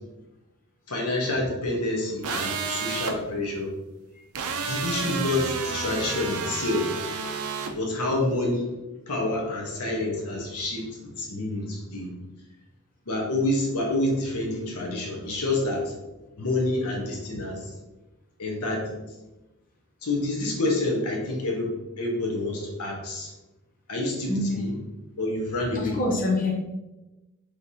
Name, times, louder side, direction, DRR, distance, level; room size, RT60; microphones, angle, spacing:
voice 1, 0.9-3.7 4.7-7.0 7.8-8.7 9.1-12.1 13.1-15.9 16.4-17.6 18.4-18.8 20.0-23.3 23.9-24.8 25.2-26.0, left 2 dB, 85° left, -1 dB, 1.1 m, -28 dB
sound 1, 2.2-3.1 4.3-7.7, right 5 dB, 75° right, 0.6 m, -31 dB
voice 2, 24.3-24.6 25.7-26.5, left 2 dB, 40° left, -2 dB, 0.8 m, -26 dB
5.8 x 3.3 x 2.8 m, 1.0 s
head